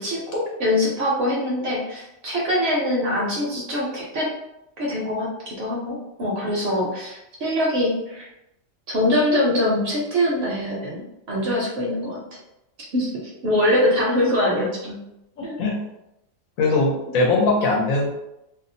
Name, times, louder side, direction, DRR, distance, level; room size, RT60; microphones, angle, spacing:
voice 1, 0.0-4.3 4.8-8.3 8.9-12.2 12.9-15.0 15.4-15.6, left 1 dB, 60° right, -3 dB, 0.8 m, -23 dB
voice 2, 15.4-15.8 16.6-18.1, left 3 dB, 85° left, -1 dB, 1.1 m, -21 dB
2.7 x 2.0 x 2.6 m, 0.86 s
omnidirectional pair, 1.4 m